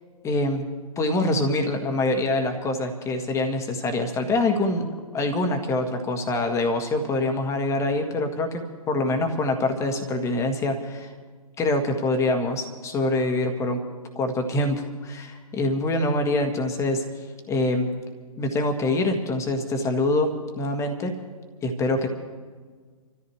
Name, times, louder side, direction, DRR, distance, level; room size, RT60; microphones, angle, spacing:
voice 1, 0.2-0.7 1.0-4.9 5.1-8.6 8.9-11.1 11.6-13.8 14.2-17.0 17.5-17.9 18.4-21.1 21.6-22.1, left 2 dB, 15° left, 5 dB, 1.8 m, -25 dB
28.5 x 14.0 x 3.2 m, 1.5 s
figure-of-eight pair, 125°, 19 cm